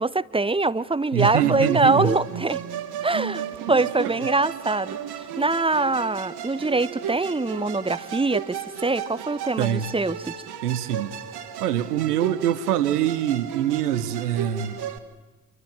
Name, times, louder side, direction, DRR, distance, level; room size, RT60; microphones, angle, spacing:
voice 1, 0.0-2.6 3.0-8.6 8.8-10.3, right 3 dB, 10° right, 16 dB, 1.1 m, -24 dB
voice 2, 1.1-2.1 3.7-4.3 9.6-9.9 10.6-11.1 11.6-14.8, right 11 dB, 80° right, 14 dB, 1.2 m, -24 dB
Musical instrument, 1.2-15.0, right 8 dB, 55° right, 2.8 m, -34 dB
27.5 x 23.5 x 8.9 m, 1.1 s
figure-of-eight pair, 50°, 45 cm